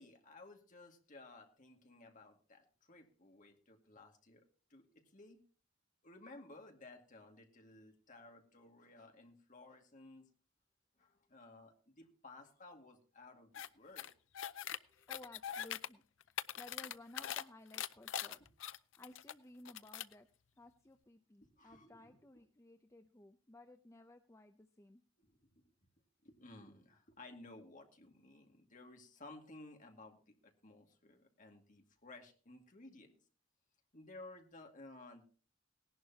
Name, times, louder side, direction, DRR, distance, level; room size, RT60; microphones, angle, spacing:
voice 1, 0.0-5.4 6.0-10.3 11.0-14.1 21.4-22.2 25.2-25.7 26.2-33.1 33.9-35.2, left 2 dB, 40° left, 3 dB, 2.2 m, -57 dB
sound 1, 13.5-13.7 14.0-14.8 15.1-15.9 16.2-17.4 17.7-19.3 19.6-20.1, left 10 dB, 70° left, 0.5 m, -42 dB
voice 2, 14.9-18.4 19.0-20.3 20.6-25.0, left 1 dB, 15° left, 7 dB, 0.6 m, -57 dB
18.5 x 11.0 x 2.9 m, 0.38 s
head